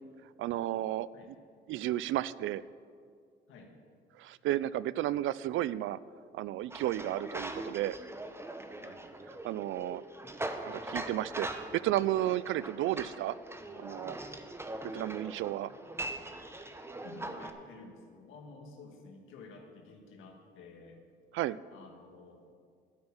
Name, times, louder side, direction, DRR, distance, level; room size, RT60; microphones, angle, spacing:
voice 1, 0.4-1.1 1.7-2.6 4.2-6.0 6.3-8.0 9.4-10.0 10.6-13.4 13.8-14.2 14.9-15.7 21.3-21.6, right 14 dB, 80° right, 19 dB, 0.4 m, -32 dB
sound 1, 6.7-17.5, right 1 dB, 10° right, 0.9 m, -41 dB
voice 2, 8.7-9.1 15.7-15.8 17.0-21.0 21.7-22.5, left 3 dB, 85° left, 3 dB, 1.8 m, -52 dB
12.5 x 8.9 x 5.7 m, 2.1 s
cardioid pair, 90°, 20 cm